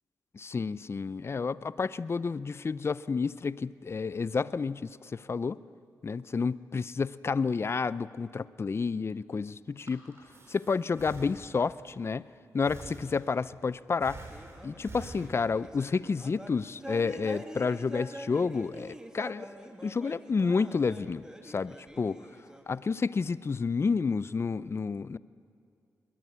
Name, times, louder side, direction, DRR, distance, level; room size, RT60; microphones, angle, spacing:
voice 1, 0.3-5.6 6.0-12.3 12.5-14.3 14.6-19.5 19.8-22.2 22.7-25.2, left 5 dB, 40° left, 18 dB, 0.5 m, -30 dB
Breathing, 9.6-11.9 12.7-13.6 14.0-15.8, right 2 dB, 45° right, 4.3 m, -47 dB
sound 1, 14.3-22.8, right 1 dB, 10° right, 2.2 m, -46 dB
20.5 x 20.5 x 8.6 m, 2.4 s
cardioid pair, 65°, 7 cm